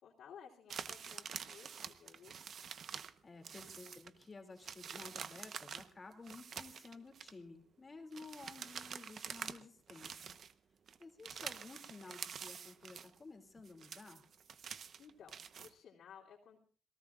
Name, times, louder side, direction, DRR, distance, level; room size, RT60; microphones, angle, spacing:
voice 1, 0.0-2.3 15.0-16.6, left 7 dB, 70° left, -3 dB, 3.1 m, -57 dB
sound 1, 0.7-3.2 3.4-4.2 4.6-7.3 8.1-9.6 9.9-10.5 10.9-13.2 13.6-15.7, right 7 dB, 55° right, 1.0 m, -47 dB
voice 2, 3.2-10.4 11.0-14.2, left 3 dB, 30° left, 4 dB, 2.7 m, -53 dB
27.5 x 18.0 x 2.5 m, 0.41 s
cardioid pair, 90°, 0 cm